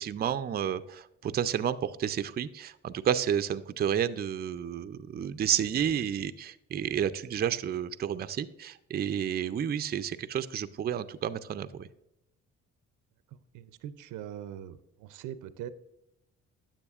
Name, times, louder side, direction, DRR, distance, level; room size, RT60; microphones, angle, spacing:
voice 1, 0.0-11.9, right 9 dB, 35° right, 12 dB, 0.4 m, -31 dB
voice 2, 13.5-15.7, right 11 dB, 85° right, 14 dB, 0.5 m, -42 dB
9.8 x 7.3 x 2.4 m, 0.87 s
cardioid pair, 90°, 30 cm